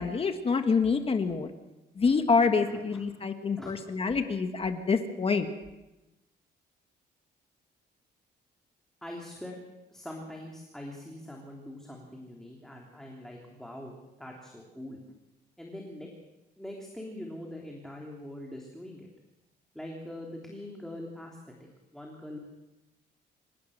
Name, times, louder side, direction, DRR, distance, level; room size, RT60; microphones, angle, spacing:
voice 1, 0.0-1.5 2.0-5.5, left 5 dB, 35° left, 7 dB, 1.6 m, -26 dB
voice 2, 2.7-3.1 3.6-3.8 9.0-9.6 9.9-15.0 15.6-16.1 16.6-19.1 19.7-22.4, left 1 dB, 5° left, -1 dB, 3.3 m, -43 dB
27.0 x 17.0 x 6.6 m, 0.98 s
cardioid pair, 130°, 18 cm